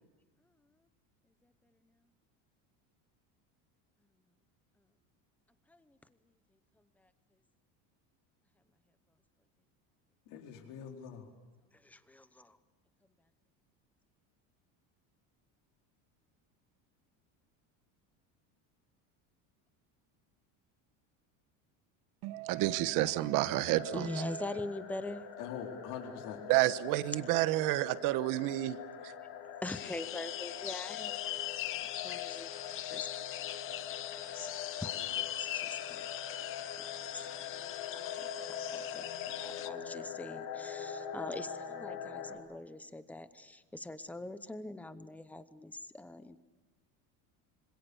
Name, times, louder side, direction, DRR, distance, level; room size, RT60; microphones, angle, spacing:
voice 1, 10.3-11.3 25.4-26.4, left 7 dB, 50° left, 4.3 m, -43 dB
voice 2, 11.8-12.6 23.9-25.2 29.6-31.4 31.8-33.6 34.1-34.5 34.8-36.1 36.8-37.3 38.0-39.0 39.4-46.4, left 2 dB, 5° left, 0.8 m, -43 dB
voice 3, 22.2-24.5 26.5-28.8 29.0-29.1, right 16 dB, 55° right, 1.2 m, -30 dB
sound 1, 23.4-42.4, left 8 dB, 80° left, 5.3 m, -43 dB
sound 2, 29.7-39.7, left 13 dB, 30° left, 0.8 m, -41 dB
26.0 x 26.0 x 7.0 m
cardioid pair, 175°, 40 cm